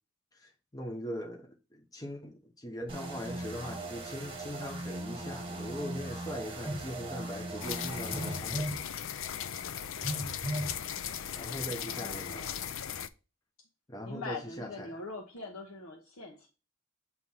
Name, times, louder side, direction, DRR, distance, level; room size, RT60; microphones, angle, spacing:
voice 1, 0.3-8.8 11.4-12.5 13.9-15.0, equal, 15° left, 0.9 m, -41 dB
sound 1, 2.9-8.4, right 2 dB, 25° right, 1.2 m, -40 dB
Telephone, 6.7-6.9 8.1-8.8 10.0-10.8, equal, 5° right, 1.7 m, -35 dB
sound 2, 7.6-13.1, left 9 dB, 65° left, 0.4 m, -37 dB
voice 2, 11.7-12.7 14.0-16.5, left 3 dB, 85° left, 1.1 m, -43 dB
7.8 x 3.0 x 5.5 m
head